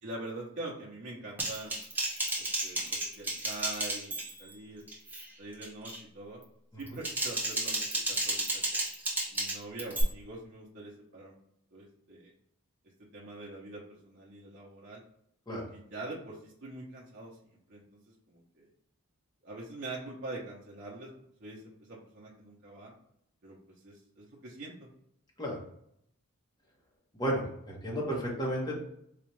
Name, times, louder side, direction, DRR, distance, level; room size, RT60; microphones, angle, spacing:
voice 1, 0.0-1.8 2.4-4.8 5.4-6.4 6.8-8.8 9.3-11.3 11.7-12.3 13.0-15.0 15.5-17.4 17.7-18.7 19.4-21.1 21.4-21.6 21.9-22.9 23.4-23.6 23.8-24.9, right 2 dB, 55° right, -5 dB, 0.8 m, -44 dB
Typing, 1.4-4.5 4.9-5.2 5.6-6.0 6.8-10.0, right 2 dB, 10° right, 0.7 m, -33 dB
voice 2, 27.1-28.8, right 1 dB, 20° left, -3 dB, 1.0 m, -32 dB
4.1 x 2.4 x 3.1 m, 0.73 s
head